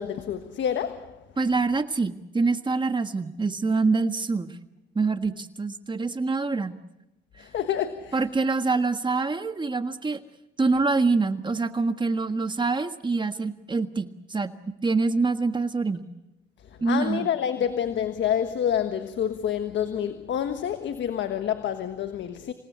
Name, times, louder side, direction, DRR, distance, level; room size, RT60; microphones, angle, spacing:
voice 1, 0.0-1.2 7.4-8.2 16.8-22.5, left 9 dB, 70° left, 1.4 m, -28 dB
voice 2, 1.4-4.6 4.9-6.7 8.1-10.2 10.6-14.5 14.8-16.1 16.8-17.3, right 3 dB, 25° right, 1.6 m, -25 dB
27.5 x 18.0 x 8.3 m
cardioid pair, 90°, 20 cm